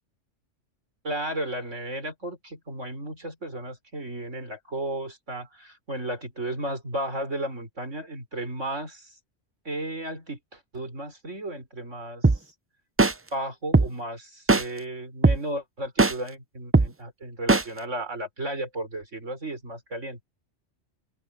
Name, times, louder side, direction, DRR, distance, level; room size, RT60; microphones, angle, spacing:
voice 1, 1.0-9.1 9.6-12.3 13.3-20.2, right 1 dB, 85° right, 5.9 m, -34 dB
sound 1, 12.2-12.4 13.0-13.1 13.7-13.9 14.5-14.6 15.2-15.4 16.0-16.1 16.7-16.9 17.5-17.6, right 3 dB, 20° right, 0.3 m, -17 dB
open air
omnidirectional pair, 1.2 m